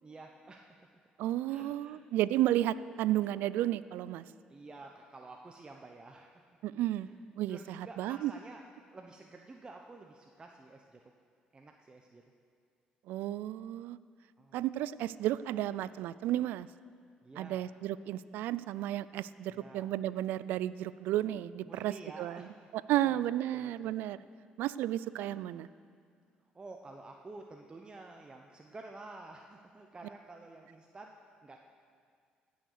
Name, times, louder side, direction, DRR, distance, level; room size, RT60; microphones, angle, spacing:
voice 1, 0.0-0.8 1.5-2.0 4.5-6.4 7.0-7.2 7.5-8.6 8.9-11.0 11.5-12.2 14.4-14.6 17.2-17.7 19.5-19.9 21.7-23.2 23.5-23.9 26.5-31.1 31.4-31.6, right 3 dB, 30° right, 2 dB, 0.8 m, -50 dB
voice 2, 1.2-4.2 6.6-7.1 7.4-8.3 13.1-14.0 14.5-16.7 17.4-22.5 22.9-24.2 24.6-25.7, right 13 dB, 80° right, 17 dB, 0.3 m, -33 dB
16.0 x 6.4 x 6.7 m, 2.1 s
cardioid pair, 80°, 3 cm